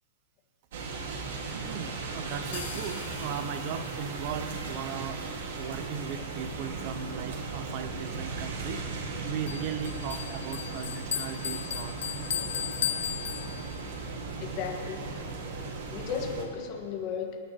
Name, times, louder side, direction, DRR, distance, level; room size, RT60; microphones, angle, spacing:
sound 1, 0.7-16.5, right 3 dB, 55° right, 1.7 m, -37 dB
voice 1, 1.2-5.3 5.6-8.9 9.2-12.0, right 8 dB, 35° right, 11 dB, 0.6 m, -38 dB
sound 2, 2.5-10.3 10.6-10.7 11.0-11.1 11.5-11.6, left 8 dB, 80° left, 1.8 m, -50 dB
Bell, 9.5-14.0, left 10 dB, 60° left, 0.4 m, -35 dB
voice 2, 14.4-15.2 15.9-17.4, left 7 dB, 30° left, 2 dB, 1.4 m, -35 dB
26.0 x 10.5 x 2.9 m, 2.3 s
supercardioid pair, 175°, 0 cm